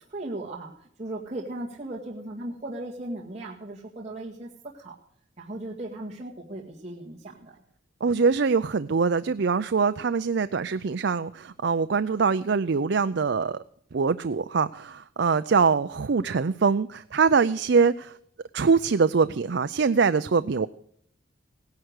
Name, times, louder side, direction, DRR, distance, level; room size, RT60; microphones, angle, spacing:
voice 1, 0.1-0.7 1.0-5.0 5.4-7.5, right 1 dB, 35° right, -3 dB, 1.9 m, -37 dB
voice 2, 8.0-13.6 13.9-18.2 18.5-20.7, right 5 dB, 60° right, 12 dB, 0.5 m, -23 dB
17.5 x 10.5 x 6.5 m, 0.69 s
head